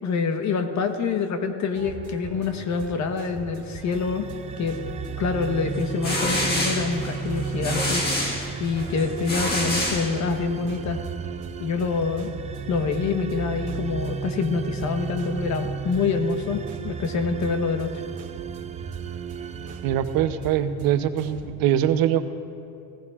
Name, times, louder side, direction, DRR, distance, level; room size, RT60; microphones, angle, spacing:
voice 1, 0.0-4.3 4.6-4.8 5.2-8.0 8.6-11.0 11.6-12.3 12.7-17.9, left 5 dB, 50° left, 6 dB, 1.1 m, -26 dB
sound 1, 1.7-21.5, right 4 dB, 55° right, 1.8 m, -41 dB
sound 2, 3.8-20.9, right 6 dB, 20° right, 0.3 m, -34 dB
sound 3, 5.7-10.6, left 1 dB, 25° left, 1.5 m, -28 dB
voice 2, 19.8-22.3, right 10 dB, 75° right, 10 dB, 0.8 m, -23 dB
18.5 x 15.5 x 2.4 m, 2.6 s
cardioid pair, 120°, 36 cm